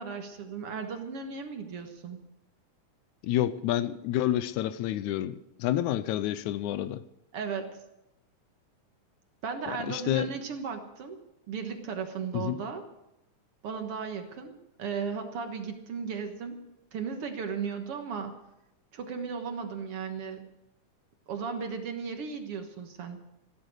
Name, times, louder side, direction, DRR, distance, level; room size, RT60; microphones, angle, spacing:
voice 1, 0.0-2.2 7.3-7.8 9.4-12.8 13.6-16.6 16.9-18.4 18.9-20.6 21.3-23.2, right 5 dB, 55° right, 2.2 m, -36 dB
voice 2, 3.2-7.0 9.7-10.3 12.3-12.6, left 12 dB, 80° left, 2.1 m, -29 dB
15.0 x 13.0 x 6.5 m
omnidirectional pair, 3.4 m